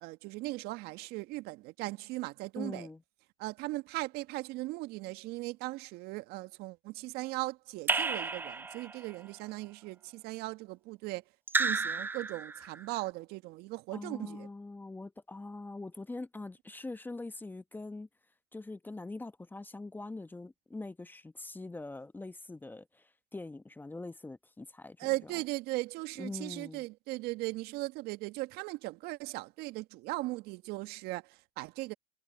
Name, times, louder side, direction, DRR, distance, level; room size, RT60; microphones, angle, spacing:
voice 1, 0.0-2.9 3.4-11.2 11.6-14.5 25.0-31.9, right 20 dB, 55° right, 1.7 m, -38 dB
voice 2, 2.6-3.0 13.9-18.1 18.5-25.1 26.2-26.8, left 2 dB, 10° left, 1.1 m, -43 dB
Raindrop / Drip, 7.9-9.1 11.5-12.8, right 4 dB, 10° right, 0.5 m, -32 dB
hypercardioid pair, 90°, 20 cm